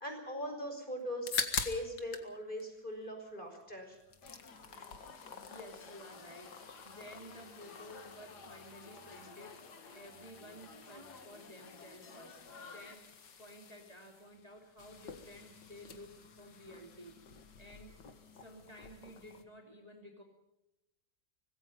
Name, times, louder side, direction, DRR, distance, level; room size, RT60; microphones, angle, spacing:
voice 1, 0.0-4.0 4.6-5.4 9.2-9.3, equal, 30° left, 4 dB, 5.6 m, -41 dB
sound 1, 1.0-2.3 2.6-3.6 3.9-19.4, left 6 dB, 85° left, 2.3 m, -46 dB
sound 2, 4.2-13.0, left 4 dB, 70° left, 2.6 m, -54 dB
voice 2, 4.4-17.2 17.6-18.0 18.4-20.2, equal, 20° right, 2 dB, 2.8 m, -54 dB
25.0 x 20.0 x 5.4 m, 0.90 s
omnidirectional pair, 1.8 m